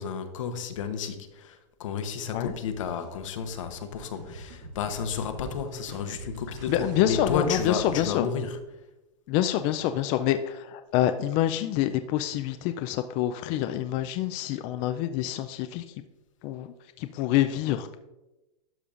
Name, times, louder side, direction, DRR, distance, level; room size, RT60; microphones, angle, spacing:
voice 1, 0.0-8.6, left 6 dB, 75° left, 7 dB, 0.9 m, -32 dB
sound 1, 2.4-8.0, right 1 dB, 65° right, 2.3 m, -45 dB
voice 2, 6.7-8.3 9.3-15.8 16.4-16.7 17.0-18.0, left 12 dB, 40° left, 8 dB, 0.4 m, -26 dB
12.0 x 5.3 x 2.5 m, 1.0 s
hypercardioid pair, 130°, 17 cm